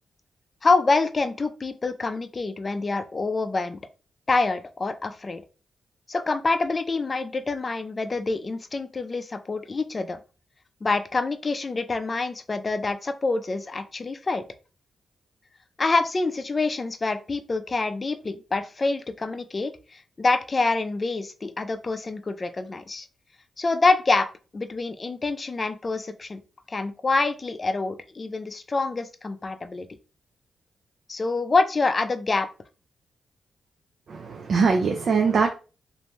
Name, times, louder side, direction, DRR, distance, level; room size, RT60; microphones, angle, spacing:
voice 1, 0.6-3.8 4.3-5.4 6.1-10.2 10.8-14.4 15.8-23.1 23.6-24.3 24.5-26.4 26.7-29.9 31.1-32.5, left 3 dB, 35° left, 0.4 m, -26 dB
voice 2, 34.1-35.5, right 5 dB, 60° right, 0.4 m, -22 dB
2.6 x 2.1 x 3.0 m
cardioid pair, 75°, 0 cm